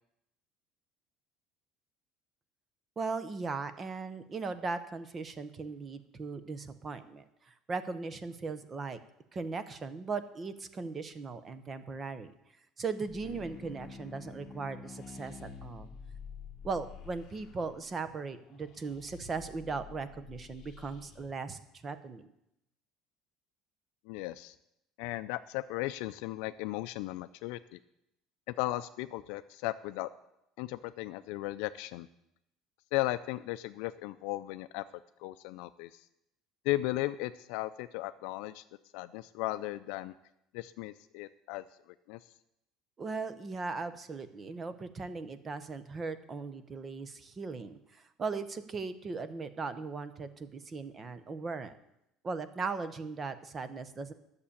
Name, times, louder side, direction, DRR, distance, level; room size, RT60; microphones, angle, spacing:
voice 1, 3.0-9.0 9.3-12.3 12.8-15.9 16.6-22.3 43.0-51.8 52.2-54.1, right 4 dB, 25° right, 12 dB, 0.8 m, -38 dB
sound 1, 13.1-21.3, left 7 dB, 40° left, 1.2 m, -51 dB
sound 2, 13.2-18.1, left 3 dB, 20° left, 1.1 m, -50 dB
voice 2, 24.1-24.5 25.0-27.8 28.5-30.1 30.6-32.1 32.9-34.8 35.2-36.1 36.6-38.6 38.9-40.1 40.5-42.2, left 17 dB, 80° left, 11 dB, 0.4 m, -36 dB
11.5 x 6.7 x 8.6 m, 0.82 s
cardioid pair, 155°, 0 cm